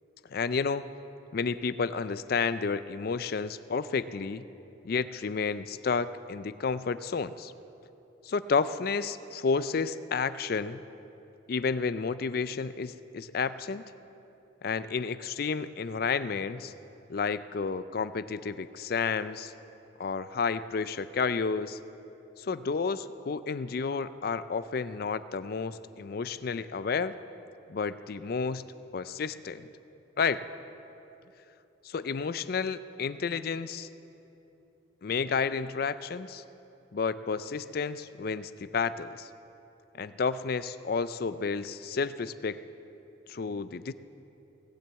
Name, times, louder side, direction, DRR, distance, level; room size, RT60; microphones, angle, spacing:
voice 1, 0.3-0.8 1.3-4.4 4.8-7.5 8.2-10.8 11.5-13.8 14.6-16.7 17.1-19.5 20.0-21.8 22.4-27.1 27.7-28.6 28.9-29.7 30.2-30.4 31.8-33.9 35.0-36.4 36.9-39.3 40.0-42.6 43.3-43.9, left 5 dB, 50° left, 14 dB, 0.4 m, -31 dB
18.0 x 7.6 x 8.1 m, 2.9 s
head